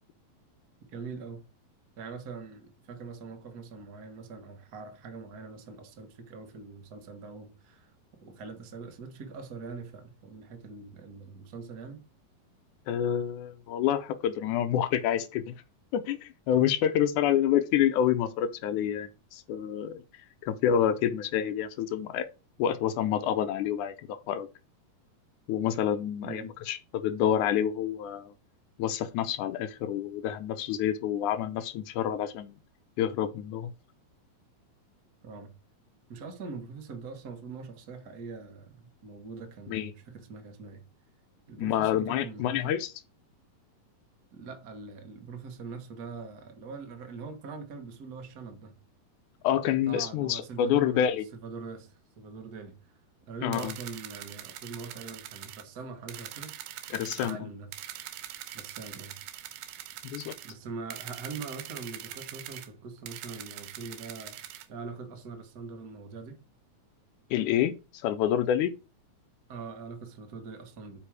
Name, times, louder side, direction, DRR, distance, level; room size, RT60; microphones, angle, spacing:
voice 1, 0.9-1.4 2.0-7.9 8.2-12.0 26.2-26.5 35.2-35.5 36.1-40.8 41.5-42.7 44.3-48.7 49.9-51.0 51.3-53.0 53.3-56.5 56.9-57.9 58.5-59.2 60.4-66.4 69.5-71.0, right 4 dB, 55° right, 1.0 m, -43 dB
voice 2, 12.9-15.5 15.9-20.0 20.4-22.3 22.6-24.5 25.5-28.3 28.8-32.6 33.0-33.7 39.7-39.9 41.6-42.9 49.4-51.2 53.4-53.7 56.9-57.4 60.0-60.4 67.3-68.7, left 10 dB, 80° left, 1.8 m, -28 dB
sound 1, 53.5-55.6 56.1-57.3 57.7-60.5 60.9-62.7 63.1-64.7, right 12 dB, 85° right, 2.5 m, -43 dB
8.7 x 5.0 x 4.8 m
omnidirectional pair, 4.1 m